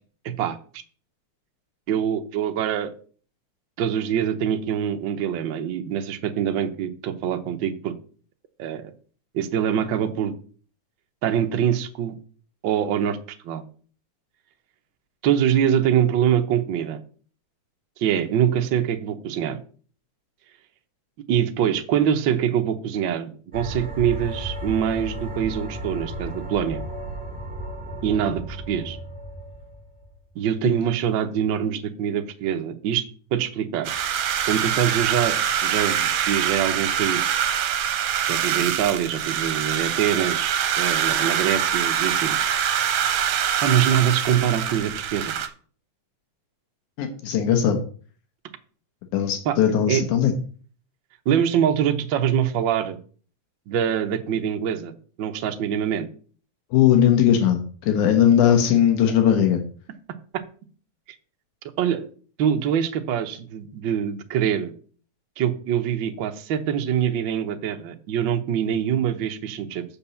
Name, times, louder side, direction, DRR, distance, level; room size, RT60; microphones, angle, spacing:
voice 1, 0.2-0.6 1.9-2.9 3.8-7.9 8.6-8.9 9.3-10.3 11.2-12.2 12.6-13.2 13.4-13.6 15.2-17.0 18.0-19.6 21.3-26.8 28.0-29.0 30.3-33.0 33.3-33.9 34.5-37.4 38.2-42.4 43.6-45.3 49.4-49.6 49.9-50.0 51.2-53.0 53.7-54.9 55.2-56.1 61.8-62.1 62.4-64.7 65.4-69.8, right 9 dB, 85° right, 5 dB, 1.0 m, -24 dB
sound 1, 23.5-30.1, equal, 5° right, 1.0 m, -34 dB
sound 2, 33.8-45.5, right 9 dB, 65° right, 1.7 m, -24 dB
voice 2, 47.0-47.8 49.1-50.3 56.7-59.6, left 9 dB, 85° left, 5 dB, 2.5 m, -19 dB
7.2 x 5.2 x 7.0 m, 0.42 s
omnidirectional pair, 3.4 m